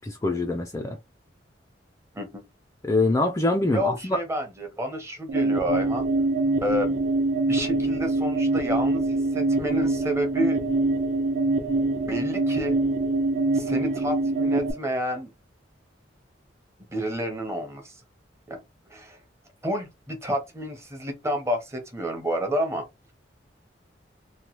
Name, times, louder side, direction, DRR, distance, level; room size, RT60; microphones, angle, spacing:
voice 1, 0.0-1.0 2.8-4.2, left 2 dB, 15° left, 0.3 m, -24 dB
voice 2, 3.7-6.1 6.6-7.0 7.5-10.6 12.0-12.8 13.5-15.3 16.9-17.9 18.5-18.6 18.9-19.2 19.6-22.9, equal, 15° right, 0.8 m, -29 dB
sound 1, 5.3-14.7, right 2 dB, 55° right, 0.8 m, -24 dB
2.9 x 2.2 x 3.0 m
head